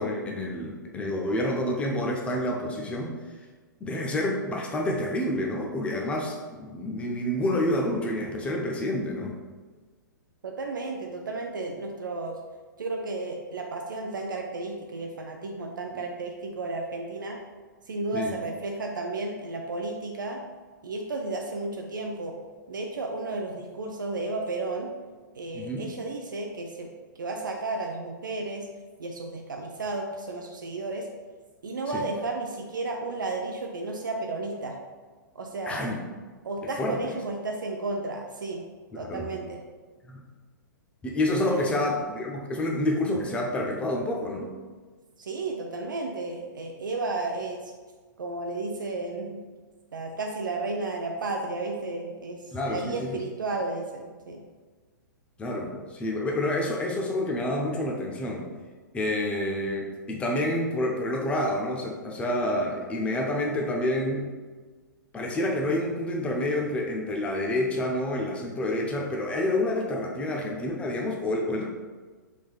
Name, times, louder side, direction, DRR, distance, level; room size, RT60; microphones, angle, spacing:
voice 1, 0.0-3.2 3.8-9.4 18.1-18.4 25.5-25.9 31.9-32.0 35.7-36.0 36.8-37.0 38.9-39.3 40.1-40.3 41.0-44.5 52.5-53.2 55.4-58.5 58.9-64.3 65.1-71.6, left 1 dB, 10° left, -1 dB, 0.5 m, -28 dB
voice 2, 10.4-12.4 12.8-17.4 17.9-20.4 20.8-22.4 22.7-24.9 25.3-26.9 27.2-28.7 29.0-31.1 31.6-34.8 35.4-35.8 36.4-38.6 39.0-39.6 41.5-41.9 45.2-47.7 48.2-49.4 49.9-54.4, right 2 dB, 70° right, 2 dB, 0.4 m, -33 dB
4.4 x 3.5 x 2.3 m, 1.4 s
figure-of-eight pair, 115°, 11 cm